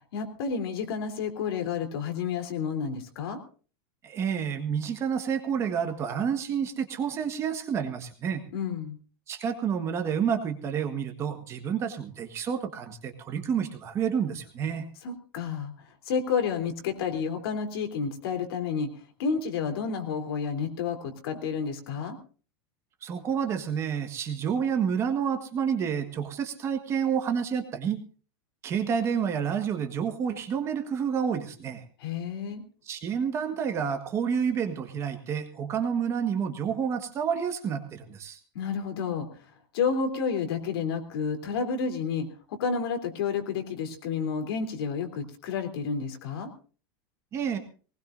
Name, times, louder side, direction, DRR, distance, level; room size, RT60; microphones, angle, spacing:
voice 1, 0.0-3.4 8.5-9.0 15.0-18.9 19.2-22.2 32.0-32.6 38.5-39.3 39.7-46.5, left 6 dB, 70° left, 6 dB, 3.3 m, -30 dB
voice 2, 4.0-8.4 9.3-14.8 23.0-28.0 28.6-31.8 32.8-38.4 47.3-47.6, right 7 dB, 20° right, 6 dB, 1.5 m, -29 dB
20.5 x 19.5 x 2.6 m, 0.38 s
supercardioid pair, 175°, 13 cm